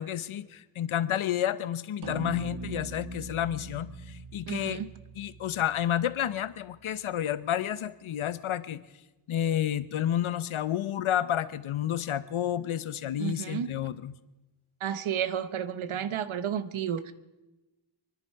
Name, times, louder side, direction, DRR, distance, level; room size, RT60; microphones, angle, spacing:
voice 1, 0.0-4.8 5.1-8.8 9.3-14.2, left 10 dB, 85° left, 15 dB, 0.8 m, -30 dB
sound 1, 2.0-6.5, right 2 dB, 55° right, 1.6 m, -41 dB
voice 2, 4.5-4.9 13.2-13.7 14.8-17.1, right 9 dB, 85° right, 13 dB, 1.0 m, -31 dB
28.0 x 10.5 x 4.6 m, 1.1 s
cardioid pair, 75°, 47 cm